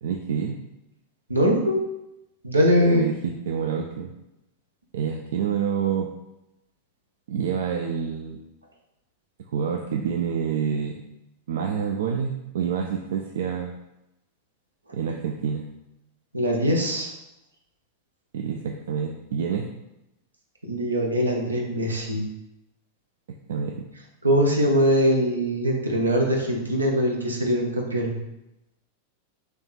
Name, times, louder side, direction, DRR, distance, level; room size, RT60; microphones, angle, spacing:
voice 1, 0.0-0.6 2.8-4.1 4.9-6.1 7.3-8.4 9.5-11.0 11.5-13.7 14.9-15.7 18.3-19.7 23.5-23.9, right 7 dB, 60° right, 2 dB, 0.3 m, -27 dB
voice 2, 1.3-1.8 2.4-3.0 16.3-17.1 20.7-22.2 24.2-28.2, equal, 80° right, 0 dB, 0.8 m, -22 dB
3.3 x 3.1 x 4.1 m, 0.90 s
figure-of-eight pair, 90°, 0 cm